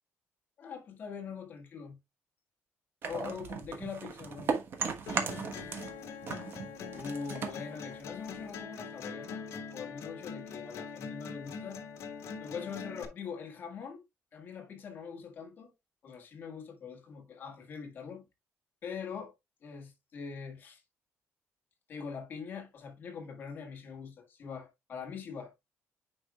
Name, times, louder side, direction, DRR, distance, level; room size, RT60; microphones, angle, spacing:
voice 1, 0.6-2.0 3.0-4.5 6.9-11.9 12.4-14.0 14.3-15.7 16.0-18.2 18.8-19.3 19.6-20.8 21.9-25.5, left 6 dB, 40° left, 1.7 m, -43 dB
sound 1, 3.0-6.0 6.2-8.6, right 5 dB, 50° right, 1.2 m, -36 dB
sound 2, 5.1-13.0, left 5 dB, 70° left, 1.3 m, -43 dB
9.3 x 4.9 x 2.3 m
cardioid pair, 165°, 5 cm